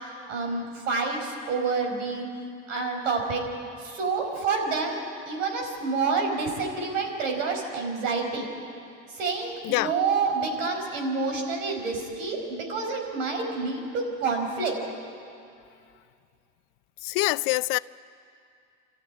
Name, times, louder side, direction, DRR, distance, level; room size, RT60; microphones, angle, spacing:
voice 1, 0.3-2.2 2.7-3.5 3.8-8.5 9.1-14.8, right 4 dB, 85° right, 5.1 m, -28 dB
voice 2, 17.0-17.8, left 22 dB, 60° left, 0.6 m, -25 dB
27.0 x 13.5 x 9.8 m
hypercardioid pair, 90°, 37 cm